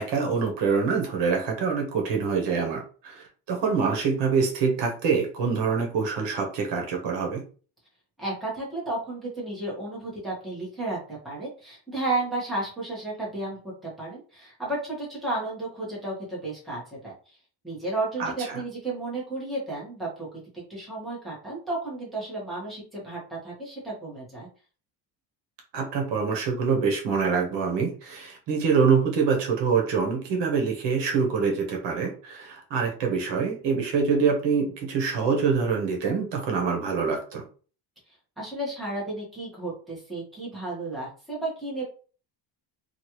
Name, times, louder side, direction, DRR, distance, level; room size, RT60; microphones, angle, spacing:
voice 1, 0.0-7.4 18.2-18.6 25.7-37.4, right 5 dB, 65° right, 2 dB, 1.0 m, -25 dB
voice 2, 8.2-17.1 17.6-24.5 38.4-41.8, right 2 dB, ahead, -7 dB, 1.2 m, -33 dB
3.1 x 2.5 x 2.9 m, 0.38 s
cardioid pair, 170°, 45 cm